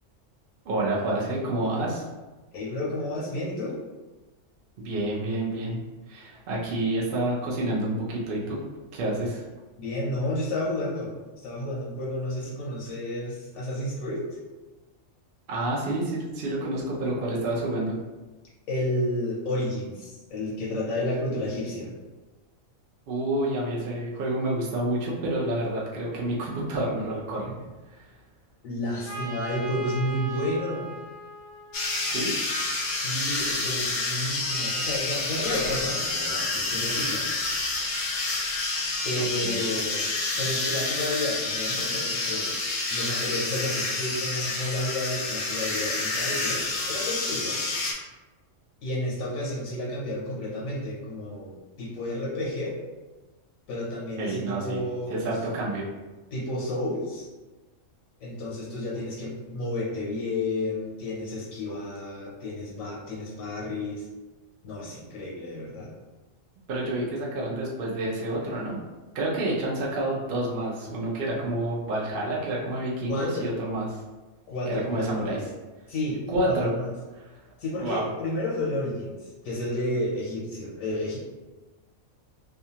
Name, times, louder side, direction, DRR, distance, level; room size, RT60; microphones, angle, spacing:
voice 1, 0.6-2.0 4.8-5.8 6.1-8.6 8.9-9.4 15.5-18.0 23.1-27.5 27.9-28.0 32.0-32.3 39.2-39.6 54.2-54.8 55.1-55.8 66.7-68.8 69.1-74.0 74.7-75.4 76.3-76.7 77.2-77.4 77.8-78.1, right 1 dB, 55° right, -4 dB, 0.7 m, -29 dB
voice 2, 2.5-3.7 9.8-14.4 18.7-21.9 28.6-30.9 32.9-37.3 39.0-40.1 40.4-42.5 42.9-47.6 48.8-52.8 53.7-55.3 56.3-57.3 58.2-64.1 64.6-65.9 73.1-73.5 74.5-75.4 75.9-76.9 77.6-81.2, left 1 dB, 80° left, -4 dB, 1.2 m, -31 dB
Trumpet, 29.0-32.8, right 2 dB, 30° left, 0.5 m, -40 dB
sound 1, 31.7-47.9, left 3 dB, 65° left, 0.8 m, -29 dB
2.7 x 2.3 x 2.8 m, 1.2 s
omnidirectional pair, 1.4 m